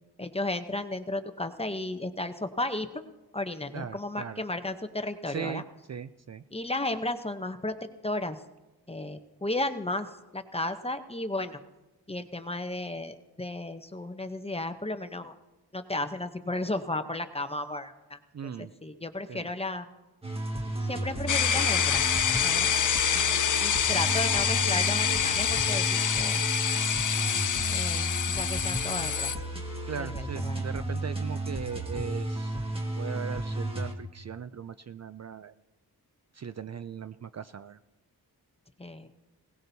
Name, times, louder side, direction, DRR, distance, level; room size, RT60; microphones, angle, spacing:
voice 1, 0.2-2.9 3.3-5.6 6.5-8.4 8.9-11.6 12.1-15.3 15.7-18.2 18.6-19.9 20.8-22.0 22.4-22.7 23.6-25.9 26.2-26.4 27.7-29.3 30.0-30.6 38.8-39.1, left 2 dB, 15° left, 8 dB, 0.7 m, -34 dB
voice 2, 3.7-4.4 5.3-5.6 5.9-6.4 18.3-18.7 19.3-19.5 29.9-32.5 33.0-35.5 36.3-37.8, right 7 dB, 45° right, 12 dB, 0.4 m, -38 dB
sound 1, 20.2-33.9, right 1 dB, 15° right, 1.5 m, -33 dB
sound 2, 21.3-29.4, left 8 dB, 50° left, 0.5 m, -26 dB
20.5 x 18.0 x 2.7 m, 1.1 s
wide cardioid pair, 150°, 39 cm